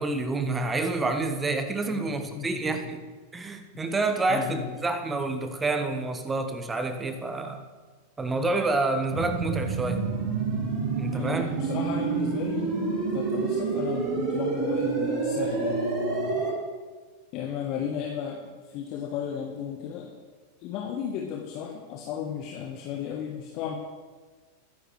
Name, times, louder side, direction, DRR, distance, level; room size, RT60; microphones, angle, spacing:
voice 1, 0.0-3.0 3.3-7.6 8.2-10.0 11.0-11.5, right 3 dB, 15° right, 7 dB, 1.3 m, -28 dB
voice 2, 1.9-2.9 3.7-3.8 4.3-4.8 11.1-12.7 13.1-16.4 17.3-20.1 20.6-23.8, left 8 dB, 40° left, 2 dB, 1.4 m, -34 dB
sound 1, 9.1-16.5, right 4 dB, 35° right, 4.6 m, -28 dB
21.0 x 10.0 x 3.3 m, 1.4 s
figure-of-eight pair, 90°, 0 cm